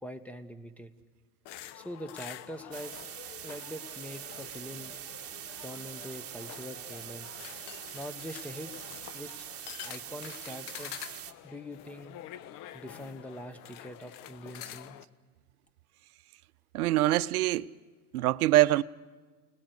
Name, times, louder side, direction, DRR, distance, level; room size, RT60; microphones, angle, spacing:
voice 1, 0.0-0.9 1.7-2.9 3.4-4.9 5.6-7.3 7.9-8.7 9.1-9.5 9.8-11.0 11.4-12.2 12.7-15.0, equal, 5° left, 1.3 m, -43 dB
sound 1, 1.5-15.0, left 12 dB, 45° left, 0.9 m, -47 dB
sound 2, 2.7-11.3, right 11 dB, 30° right, 1.7 m, -44 dB
voice 2, 16.7-17.7 18.1-18.8, right 15 dB, 70° right, 0.7 m, -24 dB
29.5 x 19.5 x 8.0 m
hypercardioid pair, 100°, 45 cm